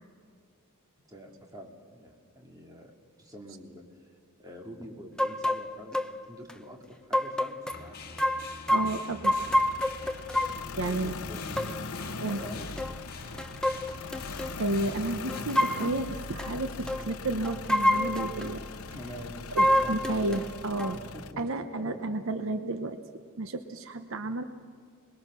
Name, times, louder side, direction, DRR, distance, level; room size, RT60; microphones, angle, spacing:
voice 1, 1.1-2.9 3.2-4.1 4.4-8.2 10.8-11.6 12.2-12.8 18.9-19.3 19.6-20.0 20.7-22.0, equal, 15° right, 1 dB, 2.5 m, -46 dB
sound 1, 5.2-5.6 5.9-6.1 6.5-6.6 7.1-7.8 8.2-10.6 11.6-11.7 12.3-12.4 12.8-13.0 13.3-14.5 15.3-16.0 16.4-16.5 16.9-17.1 17.4-18.5 19.6-20.5 20.8-20.9, left 1 dB, 5° left, 0.7 m, -27 dB
sound 2, 7.7-15.4, left 3 dB, 45° left, 1.9 m, -45 dB
voice 2, 8.7-9.3 10.8-11.2 12.2-12.4 14.6-18.6 19.5-21.0 21.4-23.0 23.4-24.4, right 2 dB, 65° right, 9 dB, 0.9 m, -32 dB
sound 3, 9.3-21.3, left 4 dB, 85° left, 0.8 m, -40 dB
26.5 x 21.0 x 6.2 m, 2.2 s
head